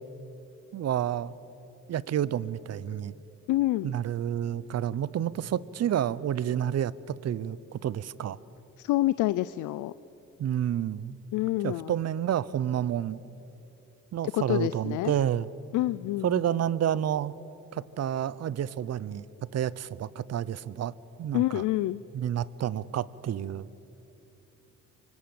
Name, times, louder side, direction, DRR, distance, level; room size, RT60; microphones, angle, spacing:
voice 1, 0.7-1.4 1.9-3.1 3.8-8.4 10.4-11.2 11.6-13.2 14.1-15.5 16.2-17.4 17.7-19.2 19.5-20.9 21.2-21.6 22.1-23.7, right 10 dB, 55° right, 20 dB, 0.8 m, -29 dB
voice 2, 3.5-3.9 8.8-9.9 11.3-11.9 14.3-15.1 15.7-16.4 21.3-22.0, left 16 dB, 85° left, 16 dB, 0.5 m, -27 dB
24.5 x 24.0 x 7.9 m, 2.9 s
cardioid pair, 90°, 30 cm